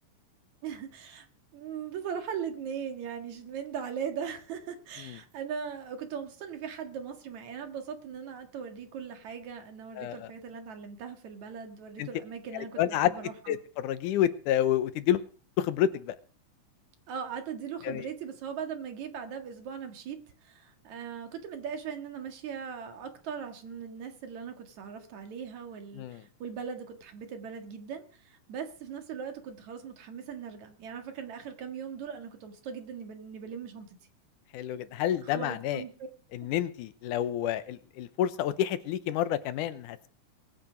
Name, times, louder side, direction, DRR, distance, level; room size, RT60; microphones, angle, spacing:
voice 1, 0.6-1.3 1.5-13.6 17.1-34.0 35.3-35.9, right 7 dB, 65° right, 6 dB, 3.1 m, -39 dB
voice 2, 10.0-10.3 12.0-12.1 12.5-13.1 13.5-15.2 15.6-16.2 17.8-18.1 25.9-26.2 34.5-35.8 36.3-40.1, left 11 dB, 85° left, 13 dB, 2.4 m, -29 dB
21.5 x 9.1 x 5.1 m, 0.40 s
omnidirectional pair, 3.6 m